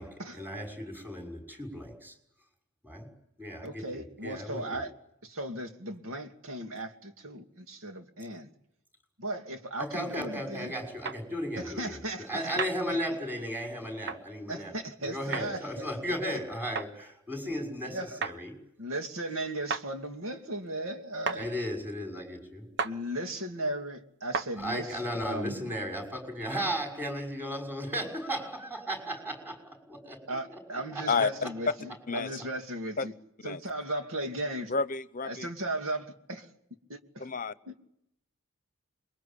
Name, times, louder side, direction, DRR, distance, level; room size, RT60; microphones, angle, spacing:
voice 1, 0.0-2.1 2.8-3.1 3.4-4.8 9.8-14.7 15.0-18.5 21.4-22.7 24.6-31.1, equal, 10° right, 6.2 m, -35 dB
voice 2, 3.6-4.9 5.2-8.5 9.2-10.7 11.6-12.3 14.5-15.9 16.3-16.4 17.9-18.2 18.8-21.5 22.8-25.0 25.3-25.7 30.3-33.1 33.4-34.7 35.2-36.5 36.9-37.2 37.7-37.8, right 1 dB, 75° right, 2.6 m, -36 dB
sound 1, 11.1-11.2 12.6-12.8 14.1-14.2 15.3-15.5 16.7-16.9 18.2-18.4 19.7-19.9 21.3-21.4 22.8-23.0 24.3-24.5, right 5 dB, 55° right, 1.1 m, -32 dB
voice 3, 34.7-35.5 37.2-37.5, left 5 dB, 40° left, 1.0 m, -30 dB
28.0 x 22.5 x 8.8 m
head